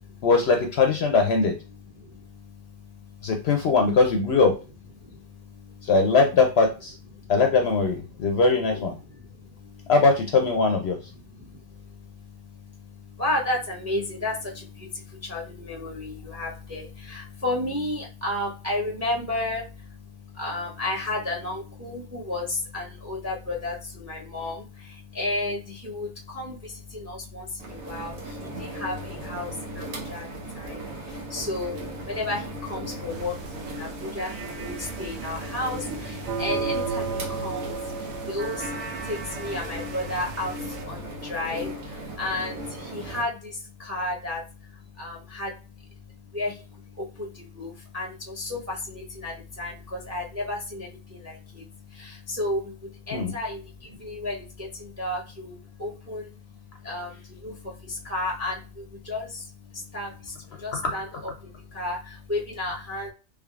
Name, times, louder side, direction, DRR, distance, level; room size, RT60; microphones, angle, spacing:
voice 1, 0.2-1.5 3.2-4.6 5.9-6.9 7.3-8.9 9.9-11.0 53.1-53.3, left 4 dB, 65° left, 4 dB, 0.7 m, -20 dB
voice 2, 2.0-3.3 5.0-5.9 7.1-7.3 8.1-8.3 9.0-9.9 11.3-45.5 46.3-56.3 56.8-63.1, left 2 dB, 20° right, -1 dB, 0.5 m, -33 dB
sound 1, 27.6-43.2, right 1 dB, 80° right, 1.3 m, -37 dB
sound 2, 33.1-40.8, right 4 dB, 65° right, 0.8 m, -35 dB
3.5 x 3.3 x 2.3 m, 0.32 s
omnidirectional pair, 1.4 m